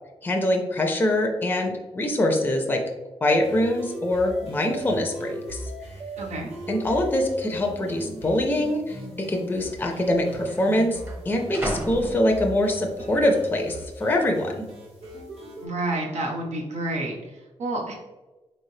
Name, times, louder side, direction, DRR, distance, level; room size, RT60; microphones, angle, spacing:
voice 1, 0.2-2.8 3.2-5.7 6.7-11.0 11.3-14.7, left 1 dB, 15° left, 2 dB, 0.4 m, -24 dB
sound 1, 3.4-15.7, right 1 dB, 65° right, 1.4 m, -39 dB
sound 2, 5.6-5.7 6.5-7.0 7.2-7.4 8.2-8.4 9.4-9.5 9.7-12.9 13.4-13.8, equal, 20° right, 0.8 m, -37 dB
voice 2, 6.2-6.5 15.6-17.9, right 2 dB, 90° right, -1 dB, 0.9 m, -29 dB
4.2 x 3.2 x 2.7 m, 1.1 s
wide cardioid pair, 145°, 11 cm